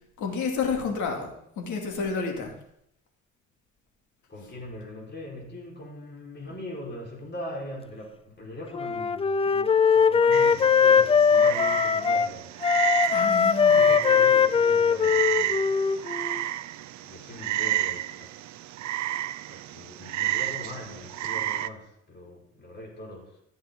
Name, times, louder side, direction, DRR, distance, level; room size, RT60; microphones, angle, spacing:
voice 1, 0.2-2.5 13.1-13.9, left 5 dB, 75° left, 2 dB, 2.5 m, -30 dB
voice 2, 4.3-12.5 13.6-15.8 17.0-18.7 19.5-23.4, left 1 dB, 35° left, -2 dB, 4.5 m, -41 dB
Wind instrument woodwind instrument, 8.7-12.3 12.6-16.4, left 6 dB, 20° left, 0.3 m, -21 dB
Frog, 10.3-21.7, right 14 dB, 65° right, 0.5 m, -31 dB
14.5 x 7.5 x 3.8 m, 0.73 s
cardioid pair, 90°, 30 cm